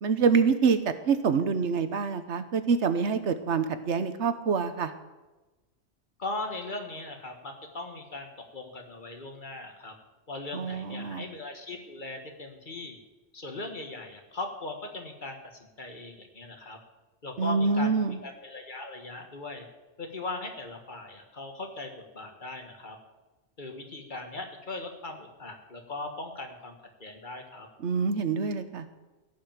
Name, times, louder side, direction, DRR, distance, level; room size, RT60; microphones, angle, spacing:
voice 1, 0.0-4.9 10.5-11.3 17.4-18.2 27.8-28.8, right 5 dB, 80° right, 11 dB, 1.3 m, -26 dB
voice 2, 6.2-8.3 8.5-9.9 10.3-13.0 13.3-16.8 17.2-19.7 20.0-23.0 23.6-26.8 27.0-27.7, left 2 dB, 45° left, 4 dB, 1.8 m, -39 dB
16.0 x 5.9 x 8.8 m, 1.1 s
omnidirectional pair, 1.2 m